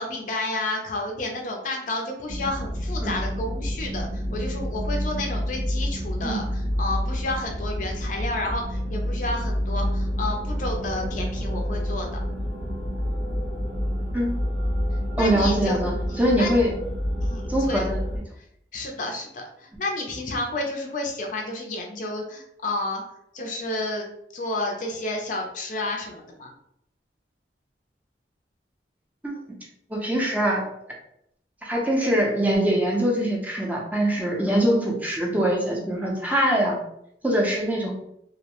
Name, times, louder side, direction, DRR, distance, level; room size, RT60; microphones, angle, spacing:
voice 1, 0.0-12.1 15.2-16.5 17.2-17.9 18.7-23.0 23.3-26.5, left 2 dB, 45° left, 1 dB, 0.4 m, -31 dB
sound 1, 2.3-18.2, equal, 85° right, 1.1 m, -28 dB
voice 2, 15.2-16.7 17.5-18.0 29.2-29.3 29.9-30.6 31.6-36.8 37.2-37.9, right 1 dB, 10° right, -2 dB, 0.5 m, -23 dB
2.6 x 2.0 x 2.8 m, 0.75 s
head